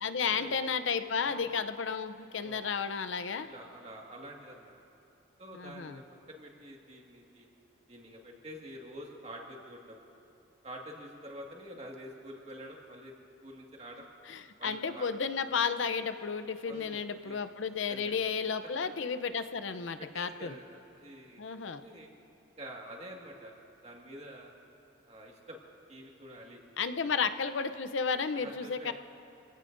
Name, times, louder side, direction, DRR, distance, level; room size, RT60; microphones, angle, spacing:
voice 1, 0.0-3.5 5.5-6.0 14.3-20.5 21.4-21.8 26.8-28.9, left 5 dB, 85° left, 10 dB, 0.7 m, -33 dB
voice 2, 1.2-1.5 2.3-2.9 3.4-4.7 5.4-7.5 7.9-10.0 10.6-13.1 13.4-14.1 14.6-15.1 16.6-17.4 17.9-18.1 20.0-21.4 21.8-22.1 22.6-23.5 23.8-24.5 25.1-25.6 25.9-26.6 27.0-27.1 28.3-28.9, equal, 35° right, -1 dB, 1.9 m, -47 dB
26.5 x 17.0 x 2.6 m, 2.6 s
head